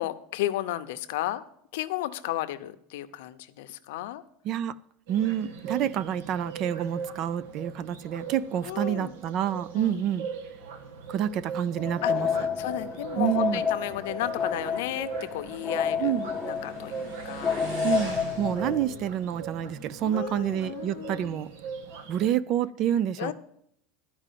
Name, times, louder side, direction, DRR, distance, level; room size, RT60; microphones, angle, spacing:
voice 1, 0.0-1.4 1.7-4.2 8.6-9.1 9.7-10.0 12.0-16.2 16.5-17.7 18.5-19.0 20.0-21.4 23.2-23.3, left 14 dB, 70° left, 0.7 m, -34 dB
voice 2, 5.1-10.3 11.1-12.3 13.2-13.6 16.0-16.3 17.8-21.5 22.1-23.3, right 10 dB, 35° right, 0.3 m, -28 dB
sound 1, 5.1-22.3, right 6 dB, 90° right, 1.4 m, -40 dB
sound 2, 11.8-18.9, left 6 dB, 15° left, 0.5 m, -30 dB
Motorcycle, 12.5-20.7, right 3 dB, 70° right, 4.5 m, -45 dB
12.5 x 4.9 x 7.5 m
supercardioid pair, 180°, 0 cm